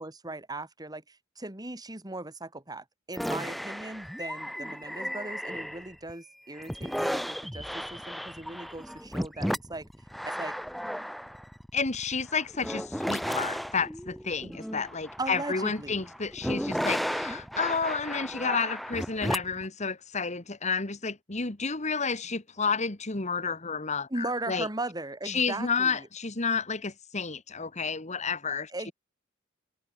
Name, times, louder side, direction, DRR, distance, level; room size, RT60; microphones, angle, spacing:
voice 1, 0.0-9.9 10.3-10.5 14.4-14.6 15.2-16.1 24.1-26.1 28.7-28.9, right 2 dB, 20° right, 3.3 m, -38 dB
sound 1, 3.1-6.1 6.5-19.7, equal, ahead, 0.3 m, -34 dB
voice 2, 11.7-24.7 25.3-28.7, left 5 dB, 35° left, 1.8 m, -31 dB
head